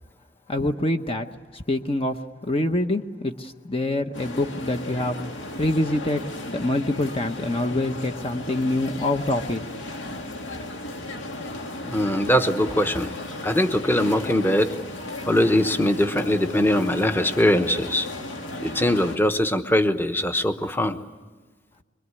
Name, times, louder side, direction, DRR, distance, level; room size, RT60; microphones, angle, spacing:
voice 1, 0.5-1.3 1.5-2.2 2.5-5.2 5.6-6.2 6.5-9.6, left 1 dB, 30° left, 6 dB, 0.9 m, -25 dB
sound 1, 4.1-19.2, left 1 dB, 70° left, 2.2 m, -35 dB
voice 2, 11.9-13.1 13.4-14.7 15.3-18.1 18.6-21.0, left 1 dB, 10° left, 8 dB, 1.1 m, -21 dB
24.0 x 23.5 x 9.7 m, 1.3 s
head